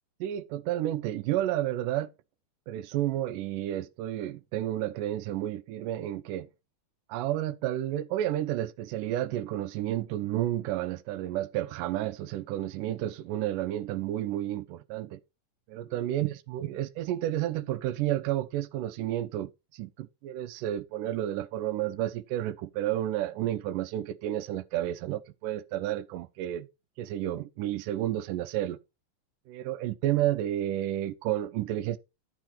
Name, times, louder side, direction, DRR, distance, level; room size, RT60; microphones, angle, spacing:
voice 1, 0.2-2.1 2.7-6.5 7.1-15.2 15.7-26.7 27.0-28.8 29.5-32.0, right 13 dB, 85° right, 2.2 m, -31 dB
12.0 x 4.7 x 4.3 m
omnidirectional pair, 3.7 m